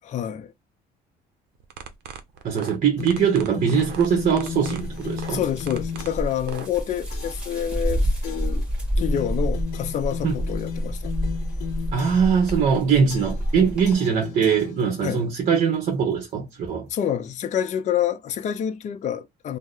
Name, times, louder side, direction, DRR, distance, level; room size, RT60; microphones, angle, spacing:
voice 1, 0.0-0.5 5.3-8.7 9.0-11.1 15.0-15.2 16.9-19.6, left 9 dB, 45° left, 0.5 m, -27 dB
sound 1, 1.6-6.7, right 8 dB, 75° right, 0.6 m, -39 dB
voice 2, 2.4-5.4 10.2-10.3 11.9-16.9, right 6 dB, 50° right, 0.9 m, -22 dB
sound 2, 3.0-6.4 7.1-7.5 8.2-8.6 9.0-12.4 13.1-13.5 13.8-15.2, left 8 dB, 80° left, 0.8 m, -35 dB
sound 3, 3.8-13.9, equal, 5° right, 1.5 m, -29 dB
2.8 x 2.1 x 3.8 m
cardioid pair, 110°, 17 cm